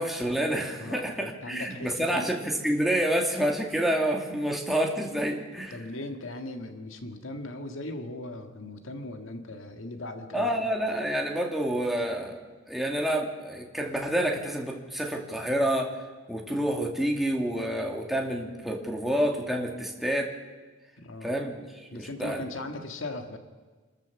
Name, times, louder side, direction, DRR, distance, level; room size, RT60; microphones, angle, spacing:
voice 1, 0.0-5.8 10.3-12.4 12.7-15.9 16.3-20.3 21.2-21.5 21.9-22.5, right 1 dB, ahead, 0 dB, 2.5 m, -28 dB
voice 2, 0.8-2.4 5.7-10.5 21.0-21.4 21.9-23.4, left 2 dB, 80° left, 6 dB, 1.8 m, -38 dB
27.5 x 13.5 x 7.1 m, 1.4 s
head